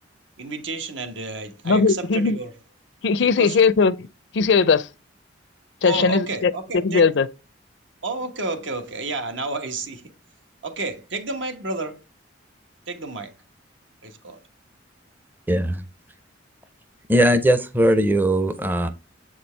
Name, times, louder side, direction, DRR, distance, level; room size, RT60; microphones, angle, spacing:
voice 1, 0.4-2.5 3.2-3.6 5.8-7.1 8.0-10.1 10.6-12.0 12.9-13.3 14.0-14.4, right 3 dB, 75° right, 1.3 m, -30 dB
voice 2, 1.6-2.4 3.0-4.1 4.3-4.9 5.8-6.5 6.8-7.3, left 5 dB, 65° left, 0.4 m, -19 dB
voice 3, 15.5-15.8 17.1-18.9, right 1 dB, 10° right, 0.5 m, -19 dB
7.3 x 4.4 x 3.2 m
head